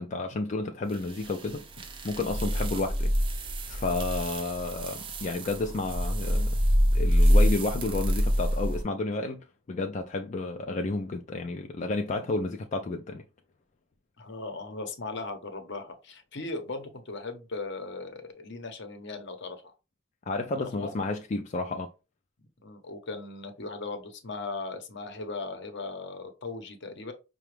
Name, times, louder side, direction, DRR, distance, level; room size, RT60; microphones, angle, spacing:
voice 1, 0.0-1.6 2.0-3.1 3.6-6.6 6.9-13.2 20.3-21.9, left 3 dB, 35° left, 0.4 m, -31 dB
sound 1, 0.9-8.8, equal, 25° right, 0.5 m, -26 dB
voice 2, 14.2-19.7 20.5-20.9 22.6-27.1, left 3 dB, 60° left, 0.8 m, -38 dB
5.8 x 2.2 x 3.2 m
head